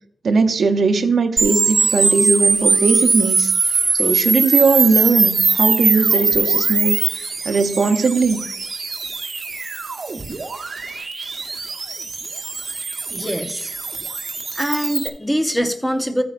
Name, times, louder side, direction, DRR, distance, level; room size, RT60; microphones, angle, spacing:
voice 1, 0.2-3.5 3.9-8.5, right 4 dB, 65° right, 7 dB, 0.8 m, -19 dB
sound 1, 1.4-15.1, right 4 dB, 45° right, 1.2 m, -21 dB
voice 2, 13.1-13.7 14.6-16.2, equal, 5° left, 6 dB, 0.8 m, -23 dB
13.5 x 9.3 x 2.5 m, 0.69 s
wide cardioid pair, 165°, 0 cm